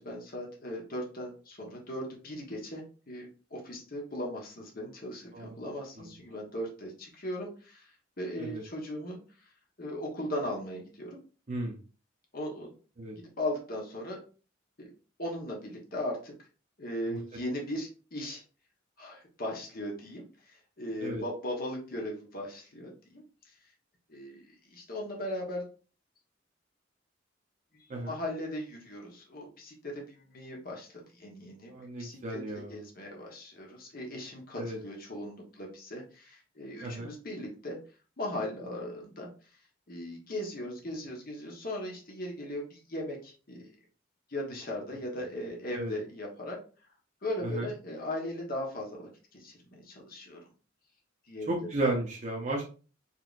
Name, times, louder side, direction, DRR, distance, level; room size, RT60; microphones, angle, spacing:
voice 1, 0.0-9.2 9.8-11.2 12.3-12.7 13.1-14.2 14.8-14.9 15.2-16.3 16.8-18.4 19.0-23.2 24.1-25.6 27.7-31.7 32.0-32.4 32.7-37.8 38.2-39.3 39.9-43.7 44.3-46.6 47.2-50.4 51.3-51.5, left 1 dB, 50° left, -1 dB, 1.3 m, -38 dB
voice 2, 31.7-32.8 34.6-34.8 36.8-37.1 45.7-45.9 47.4-47.7 51.5-52.6, right 2 dB, 40° right, -2 dB, 0.8 m, -34 dB
4.5 x 3.5 x 2.6 m, 0.37 s
head